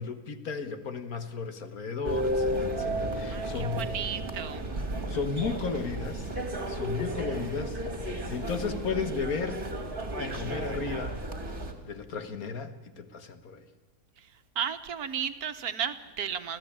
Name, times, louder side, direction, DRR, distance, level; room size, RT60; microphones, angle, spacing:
voice 1, 0.0-3.9 5.1-6.4 6.7-9.6 10.2-11.2 11.8-13.7, left 5 dB, 70° left, 9 dB, 1.9 m, -34 dB
sound 1, 2.0-11.7, right 1 dB, 35° right, 2.7 m, -33 dB
voice 2, 3.3-4.7 14.2-14.3 14.5-16.6, right 8 dB, 70° right, 9 dB, 1.6 m, -34 dB
25.5 x 15.0 x 8.8 m, 1.3 s
omnidirectional pair, 1.6 m